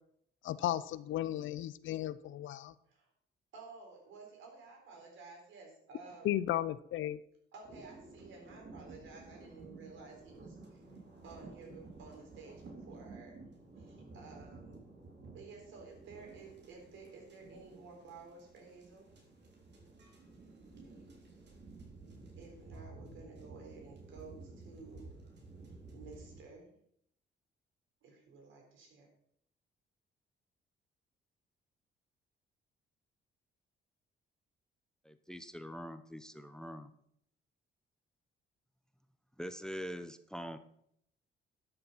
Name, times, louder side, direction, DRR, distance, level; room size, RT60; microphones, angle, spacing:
voice 1, 0.4-2.7 6.2-7.2, left 12 dB, 75° left, 16 dB, 0.7 m, -35 dB
voice 2, 3.5-6.5 7.5-13.4 13.7-14.9 15.3-19.1 22.4-25.1 25.9-26.7 28.0-29.1, right 4 dB, 80° right, 2 dB, 4.0 m, -53 dB
sound 1, 7.6-26.4, right 3 dB, 60° right, 3.4 m, -53 dB
voice 3, 35.0-36.9 39.4-40.6, equal, 5° left, 10 dB, 0.8 m, -44 dB
12.0 x 6.9 x 5.7 m, 0.70 s
cardioid pair, 90°, 20 cm